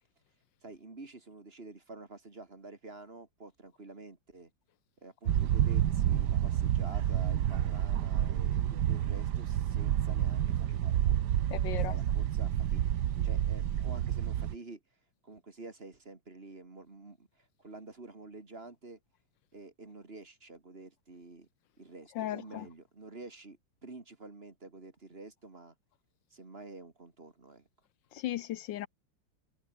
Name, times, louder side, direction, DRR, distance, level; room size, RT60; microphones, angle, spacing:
voice 1, 0.6-4.5 5.0-11.2 11.5-14.8 15.2-19.0 19.5-21.5 21.8-25.7 26.3-27.7, right 3 dB, 30° right, 2.6 m, -49 dB
sound 1, 5.3-14.5, right 11 dB, 60° right, 1.4 m, -29 dB
voice 2, 11.5-11.9 22.2-22.7 28.1-28.9, left 13 dB, 75° left, 1.3 m, -36 dB
omnidirectional pair, 2.1 m